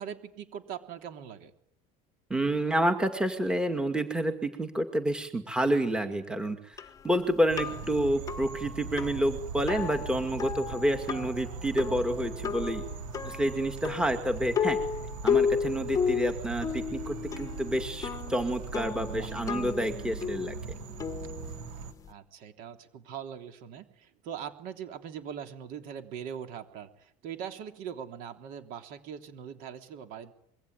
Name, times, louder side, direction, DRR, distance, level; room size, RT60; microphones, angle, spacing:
voice 1, 0.0-1.5 7.7-7.9 11.1-11.2 19.1-19.4 22.1-30.3, right 8 dB, 60° right, 7 dB, 3.3 m, -41 dB
voice 2, 2.3-6.6 7.0-12.8 13.2-14.8 15.2-20.5, right 1 dB, 5° right, 7 dB, 2.3 m, -29 dB
sound 1, 6.8-22.1, left 7 dB, 20° left, 1.1 m, -34 dB
sound 2, 7.5-21.9, right 6 dB, 85° right, 2.6 m, -40 dB
26.0 x 23.0 x 9.6 m, 0.67 s
cardioid pair, 165°, 16 cm